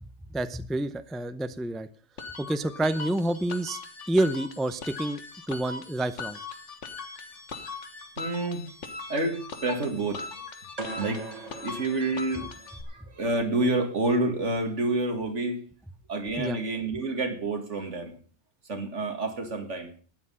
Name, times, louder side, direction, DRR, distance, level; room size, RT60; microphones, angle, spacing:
voice 1, 0.0-1.9 2.4-3.8 4.1-5.2 5.5-6.4 16.4-16.6, right 1 dB, ahead, 12 dB, 0.4 m, -28 dB
sound 1, 2.2-12.8, left 4 dB, 85° left, 1.8 m, -40 dB
voice 2, 8.2-8.6 9.1-10.2 11.0-11.2 11.6-12.5 12.9-15.6 16.1-18.1 18.7-19.9, right 2 dB, 80° right, 5 dB, 2.4 m, -28 dB
sound 2, 10.8-12.9, right 2 dB, 35° right, 1.5 m, -40 dB
13.0 x 9.8 x 5.6 m, 0.41 s
omnidirectional pair, 1.2 m